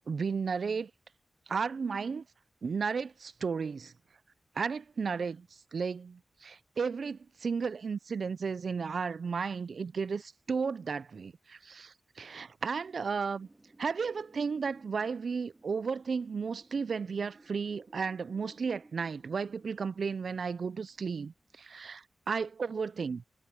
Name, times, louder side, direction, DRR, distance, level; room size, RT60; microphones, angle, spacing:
voice 1, 0.1-0.9 1.5-2.2 2.6-3.9 4.6-5.5 5.7-13.5 13.8-23.2, right 5 dB, 70° right, 0.6 m, -34 dB
Wind, 13.1-21.8, right 2 dB, 35° right, 2.6 m, -61 dB
cardioid pair, 45°, 0 cm